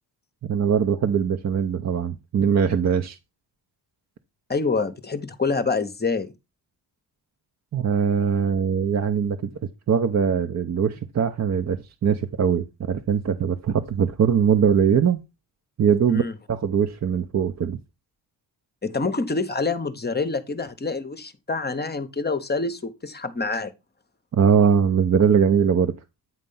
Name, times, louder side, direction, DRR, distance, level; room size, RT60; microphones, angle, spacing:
voice 1, 0.4-3.2 7.7-9.4 9.9-15.2 15.8-17.8 24.3-25.9, right 7 dB, 40° right, 0.7 m, -21 dB
voice 2, 4.5-6.3 16.1-16.3 18.8-23.7, left 4 dB, 25° left, 0.8 m, -26 dB
9.2 x 3.3 x 5.5 m
cardioid pair, 90°, 41 cm